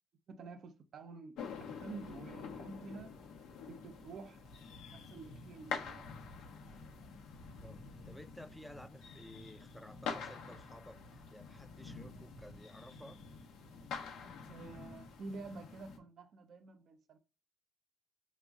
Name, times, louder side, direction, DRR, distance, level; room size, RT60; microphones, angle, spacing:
voice 1, 0.3-3.2 3.7-4.4 4.9-6.1 14.5-17.2, right 3 dB, 60° right, 0.5 m, -49 dB
sound 1, 1.4-16.0, left 5 dB, 90° left, 0.7 m, -47 dB
voice 2, 7.6-13.2, left 1 dB, 5° left, 0.4 m, -54 dB
5.1 x 2.1 x 3.5 m
cardioid pair, 90°, 0 cm